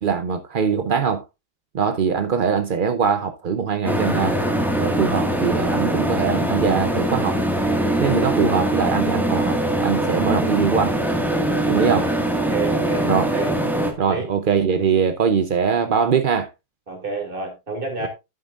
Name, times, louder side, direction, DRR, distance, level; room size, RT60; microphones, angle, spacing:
voice 1, 0.0-1.2 1.7-4.4 4.8-7.4 8.0-11.0 11.7-12.1 13.0-13.3 14.0-16.5 18.0-18.1, right 6 dB, 55° right, 0.5 m, -22 dB
sound 1, 3.8-13.9, right 1 dB, ahead, 1.6 m, -22 dB
voice 2, 11.5-13.5 14.1-14.3 16.9-18.1, right 3 dB, 30° right, 2.9 m, -30 dB
11.0 x 8.8 x 2.5 m
omnidirectional pair, 1.8 m